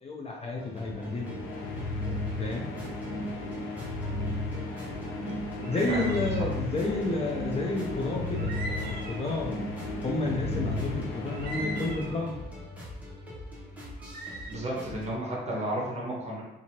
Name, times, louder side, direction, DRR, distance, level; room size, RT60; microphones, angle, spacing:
voice 1, 0.0-1.4 2.4-2.7 5.7-9.6 10.0-12.3, left 2 dB, 30° left, -1 dB, 0.5 m, -31 dB
sound 1, 0.6-15.1, left 1 dB, 5° right, 1.0 m, -43 dB
sound 2, 0.8-12.7, left 2 dB, 80° left, 0.6 m, -34 dB
sound 3, 5.6-6.6 8.4-9.4 11.3-12.3 14.0-14.5, right 1 dB, 55° right, 0.6 m, -39 dB
voice 2, 14.5-16.4, right 1 dB, 35° right, -3 dB, 1.0 m, -32 dB
2.7 x 2.6 x 2.9 m, 0.97 s
cardioid pair, 90°, 20 cm